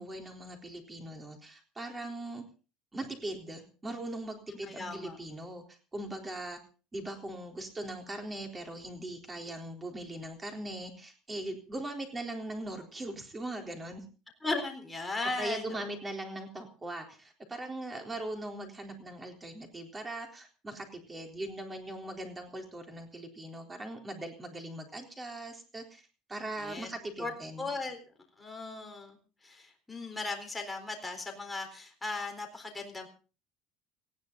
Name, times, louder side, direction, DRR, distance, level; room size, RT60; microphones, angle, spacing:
voice 1, 0.0-2.4 2.9-6.6 6.9-14.0 15.4-26.0 26.3-27.7, right 1 dB, 15° right, 4 dB, 3.9 m, -40 dB
voice 2, 4.7-5.2 14.4-15.9 26.6-26.9 27.2-27.3 27.6-28.0 28.4-29.2 29.4-33.1, left 3 dB, 10° left, 3 dB, 4.1 m, -37 dB
19.0 x 15.5 x 4.0 m, 0.36 s
cardioid pair, 145°, 0 cm